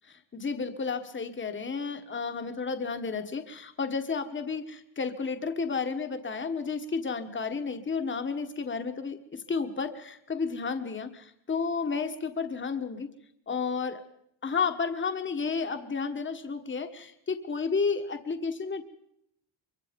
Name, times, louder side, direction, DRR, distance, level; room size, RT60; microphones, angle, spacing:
voice 1, 0.3-13.1 13.5-14.0 14.4-18.8, left 5 dB, 25° left, 8 dB, 1.3 m, -32 dB
24.0 x 23.5 x 5.2 m, 0.75 s
wide cardioid pair, 170°, 46 cm